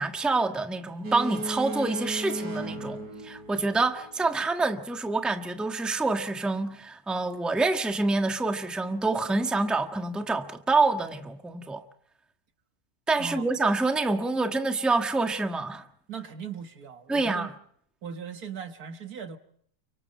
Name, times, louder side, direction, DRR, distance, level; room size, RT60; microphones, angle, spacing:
voice 1, 0.0-3.0 3.2-11.8 13.1-15.8 17.1-17.5, right 3 dB, ahead, 1.3 m, -27 dB
Boat Water vehicle, 1.0-4.2, right 1 dB, 85° right, 3.6 m, -35 dB
voice 2, 13.2-13.5 16.1-17.5 18.0-19.4, right 6 dB, 65° right, 2.0 m, -38 dB
30.0 x 25.0 x 4.3 m
omnidirectional pair, 1.8 m